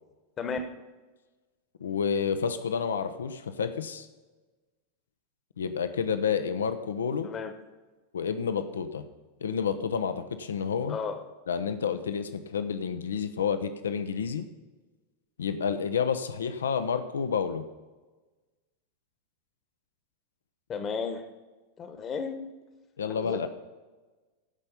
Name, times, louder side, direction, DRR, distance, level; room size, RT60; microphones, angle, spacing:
voice 1, 0.4-0.7 7.2-7.5 10.9-11.2 20.7-21.3 21.8-22.4 23.1-23.5, left 5 dB, 25° left, 8 dB, 1.3 m, -33 dB
voice 2, 1.8-4.1 5.6-7.3 8.1-9.1 9.4-11.0 11.5-14.5 15.4-17.6 23.0-23.5, left 6 dB, 65° left, 10 dB, 0.7 m, -29 dB
16.0 x 5.4 x 5.6 m, 1.2 s
figure-of-eight pair, 90°, 0 cm